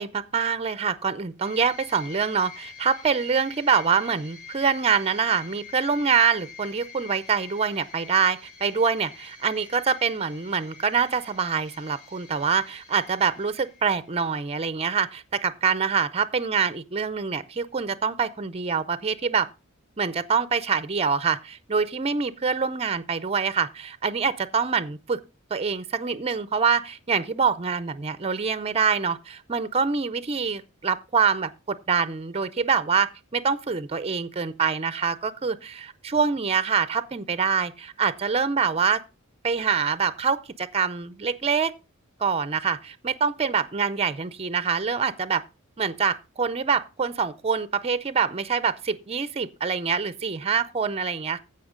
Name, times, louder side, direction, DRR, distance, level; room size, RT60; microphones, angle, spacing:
voice 1, 0.0-19.5 20.0-25.2 25.5-39.0 39.4-41.7 42.2-45.4 45.8-51.4, right 6 dB, 30° right, 0.5 m, -25 dB
sound 1, 1.4-14.3, left 6 dB, 35° left, 3.7 m, -46 dB
15.0 x 5.7 x 3.7 m
head